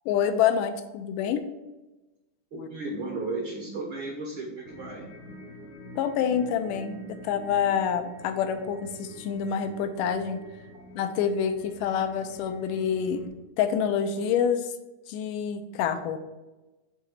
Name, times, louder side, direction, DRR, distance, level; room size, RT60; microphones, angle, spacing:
voice 1, 0.1-1.4 2.5-2.7 6.0-10.4 11.0-13.3 13.6-14.7 15.1-16.2, left 8 dB, 90° left, 8 dB, 2.3 m, -27 dB
voice 2, 2.5-5.1, right 3 dB, 65° right, -1 dB, 1.3 m, -34 dB
sound 1, 4.6-13.3, equal, 60° left, 1.1 m, -45 dB
6.6 x 3.7 x 6.4 m, 1.1 s
omnidirectional pair, 3.7 m